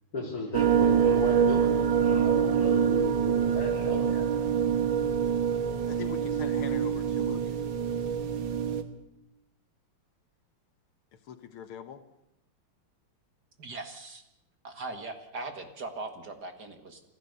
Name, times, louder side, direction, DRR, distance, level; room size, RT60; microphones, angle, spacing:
voice 1, 0.1-4.5, left 1 dB, 45° left, 0 dB, 4.6 m, -34 dB
sound 1, 0.5-8.8, right 8 dB, 65° right, 2.0 m, -25 dB
voice 2, 5.9-7.5 11.3-12.0, left 7 dB, 75° left, 9 dB, 2.0 m, -42 dB
voice 3, 13.6-14.2 14.6-17.0, right 3 dB, 50° right, 6 dB, 2.3 m, -40 dB
28.0 x 14.5 x 6.8 m, 0.85 s
omnidirectional pair, 2.4 m